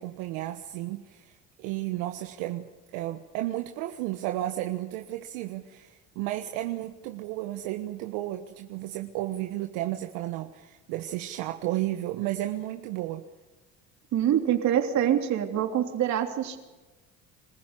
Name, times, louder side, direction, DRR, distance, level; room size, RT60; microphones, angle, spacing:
voice 1, 0.0-2.7 2.9-13.2, right 15 dB, 80° right, 5 dB, 1.3 m, -33 dB
voice 2, 14.1-16.6, right 10 dB, 60° right, 5 dB, 3.3 m, -25 dB
25.5 x 15.0 x 9.9 m, 1.2 s
supercardioid pair, 85°, 32 cm